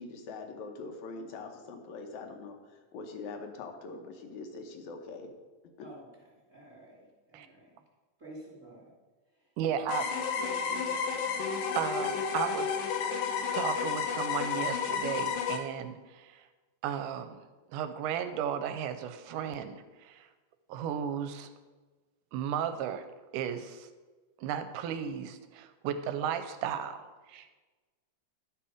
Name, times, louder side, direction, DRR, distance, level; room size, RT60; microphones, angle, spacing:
voice 1, 0.0-5.3 5.8-5.9, left 3 dB, 70° left, 4 dB, 2.0 m, -43 dB
voice 2, 6.5-7.8 8.2-8.9 9.3-9.5 10.4-11.3, right 1 dB, 25° right, -5 dB, 2.4 m, -49 dB
voice 3, 9.6-10.3 11.8-12.8 13.5-16.5 16.8-17.4 17.7-20.3 20.7-21.5 22.3-23.0 23.3-23.9 24.4-27.5, right 9 dB, 80° right, 9 dB, 2.1 m, -35 dB
sound 1, 9.9-15.6, left 6 dB, 85° left, 2.6 m, -31 dB
12.0 x 5.7 x 4.9 m, 1.3 s
omnidirectional pair, 3.9 m